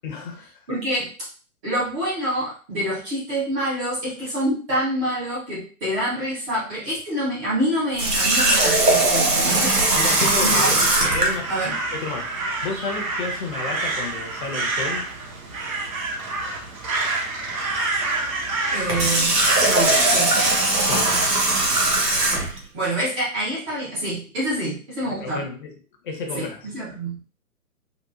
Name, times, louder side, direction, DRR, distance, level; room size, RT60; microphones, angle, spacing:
voice 1, 0.0-0.5 9.4-9.6 9.9-10.8 11.1-15.1 20.8-21.3 25.1-25.7 26.0-26.7, left 4 dB, 35° left, 2 dB, 0.8 m, -32 dB
voice 2, 0.7-1.1 1.6-9.7 10.4-10.8 11.5-11.8 18.7-19.4 19.6-20.5 22.7-25.4 26.3-27.2, right 1 dB, 10° right, -8 dB, 0.5 m, -26 dB
Water tap faucet, 8.0-11.4 18.8-22.6, right 2 dB, 85° right, 1.2 m, -20 dB
Crow, 9.3-22.0, right 3 dB, 60° right, 1.0 m, -28 dB
3.9 x 2.4 x 2.3 m, 0.38 s
figure-of-eight pair, 135°, 46 cm